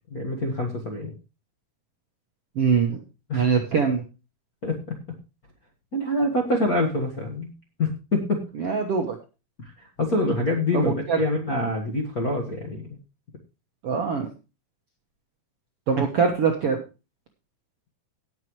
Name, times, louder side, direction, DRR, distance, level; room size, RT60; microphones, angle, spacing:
voice 1, 0.1-1.1 3.3-3.4 4.6-4.9 5.9-7.5 7.8-8.5 9.6-9.7 10.0-12.8, left 1 dB, 75° left, 1 dB, 0.8 m, -25 dB
voice 2, 2.5-3.0 3.3-4.0 8.5-9.2 10.7-11.2 13.8-14.3 15.9-16.8, right 5 dB, 75° right, 3 dB, 1.3 m, -23 dB
18.0 x 7.6 x 3.1 m, 0.30 s
omnidirectional pair, 4.6 m